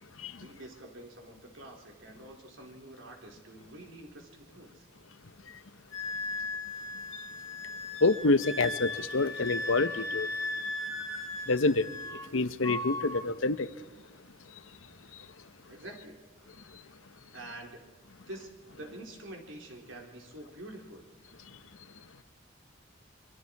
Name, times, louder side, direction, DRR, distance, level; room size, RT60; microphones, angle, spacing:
voice 1, 0.3-4.9 6.3-6.5 15.7-16.2 17.3-17.8 18.3-21.1, right 1 dB, 70° right, 4.0 m, -47 dB
Wind instrument woodwind instrument, 5.9-12.3 12.6-13.3, left 2 dB, 15° left, 2.7 m, -37 dB
voice 2, 8.0-10.3 11.5-11.9 12.3-13.7, left 3 dB, 75° left, 0.9 m, -27 dB
27.0 x 24.0 x 4.7 m
head